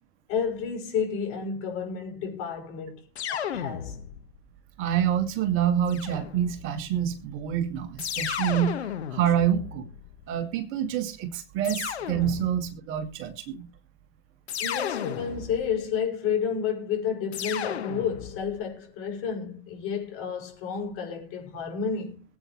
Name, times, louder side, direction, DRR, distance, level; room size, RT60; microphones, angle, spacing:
voice 1, 0.3-3.0 3.3-4.0 12.2-12.3 14.6-22.2, left 7 dB, 40° left, 5.9 m, -31 dB
sound 1, 3.1-4.4 5.9-6.7 8.0-10.3 11.6-12.8 14.5-15.8 17.3-18.5, left 9 dB, 70° left, 1.5 m, -34 dB
voice 2, 4.8-8.8 9.1-9.8 10.3-13.7, right 9 dB, 40° right, 2.1 m, -27 dB
21.5 x 8.7 x 3.2 m
figure-of-eight pair, 100°, 33 cm